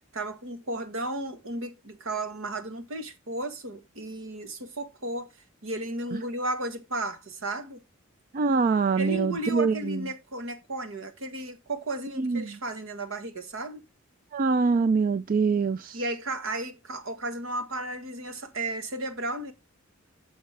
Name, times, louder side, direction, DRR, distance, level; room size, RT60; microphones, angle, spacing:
voice 1, 0.1-5.3 5.6-7.8 9.0-13.8 15.9-19.5, right 2 dB, 70° right, 1.4 m, -34 dB
voice 2, 8.3-10.0 12.2-12.6 14.3-16.0, right 4 dB, 45° right, 0.4 m, -24 dB
9.3 x 6.6 x 3.3 m
head